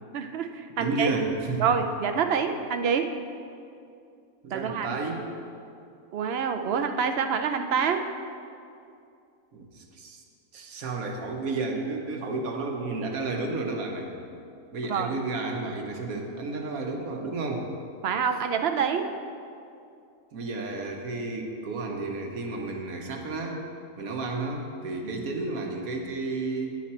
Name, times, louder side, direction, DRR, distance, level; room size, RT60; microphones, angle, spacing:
voice 1, 0.1-1.1 1.6-3.1 4.5-4.9 6.1-8.0 14.9-15.1 18.0-19.1 25.0-25.2, right 6 dB, 60° right, 7 dB, 0.7 m, -26 dB
voice 2, 0.8-1.6 4.4-5.2 9.5-10.2 10.5-14.1 14.7-17.7 20.3-23.6 24.0-26.8, right 3 dB, 85° right, 2 dB, 1.5 m, -32 dB
9.4 x 9.0 x 4.3 m, 2.5 s
omnidirectional pair, 1.5 m